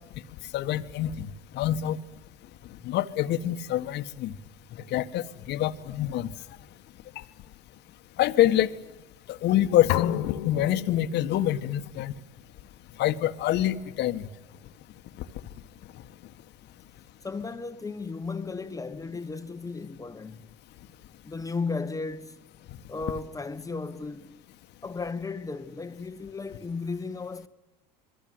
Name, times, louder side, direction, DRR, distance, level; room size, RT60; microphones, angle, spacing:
voice 1, 0.5-2.0 2.8-4.3 4.9-6.3 7.2-7.3 8.2-8.7 9.3-12.1 13.0-14.3, left 12 dB, 55° left, 1.6 m, -26 dB
sound 1, 9.9-11.7, left 17 dB, 70° left, 1.0 m, -32 dB
voice 2, 17.2-20.5 21.2-22.4 22.9-24.4 24.8-27.5, left 4 dB, 15° left, 1.4 m, -35 dB
28.0 x 22.0 x 7.8 m
hypercardioid pair, 80°, 21 cm